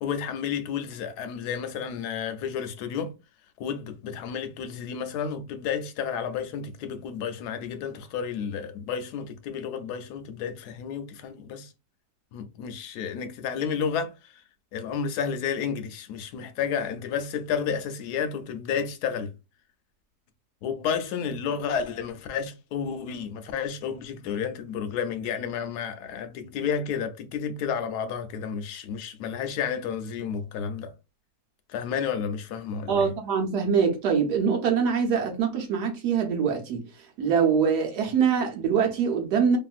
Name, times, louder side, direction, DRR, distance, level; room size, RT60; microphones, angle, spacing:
voice 1, 0.0-3.1 3.6-11.7 12.3-14.4 14.7-19.3 20.6-30.9 31.7-33.1, left 7 dB, 80° left, 1.1 m, -31 dB
voice 2, 32.9-36.8 37.2-39.6, right 6 dB, 75° right, 1.4 m, -24 dB
2.9 x 2.6 x 2.4 m
omnidirectional pair, 1.7 m